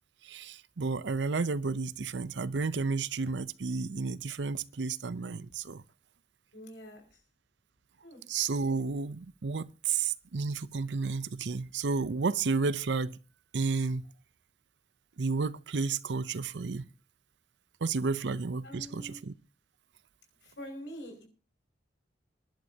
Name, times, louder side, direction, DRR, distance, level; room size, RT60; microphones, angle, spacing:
voice 1, 0.2-5.8 8.3-13.2 13.5-14.1 15.2-16.8 17.8-19.3, right 4 dB, 70° right, 0.6 m, -32 dB
voice 2, 6.5-7.0 8.0-8.2 18.6-19.2 20.4-21.3, equal, 75° left, 5.5 m, -45 dB
26.0 x 11.5 x 2.8 m
head